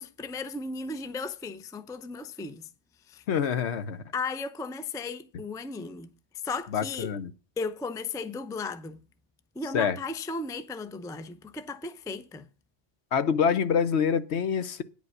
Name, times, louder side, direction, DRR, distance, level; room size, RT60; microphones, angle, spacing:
voice 1, 0.0-2.7 3.1-3.2 4.1-6.1 6.4-7.1 7.6-9.0 9.5-12.5, left 3 dB, 5° left, 0.4 m, -35 dB
voice 2, 3.3-4.0 6.7-7.3 9.7-10.0 13.1-14.8, left 7 dB, 70° left, 1.1 m, -26 dB
9.7 x 5.2 x 7.7 m
omnidirectional pair, 1.2 m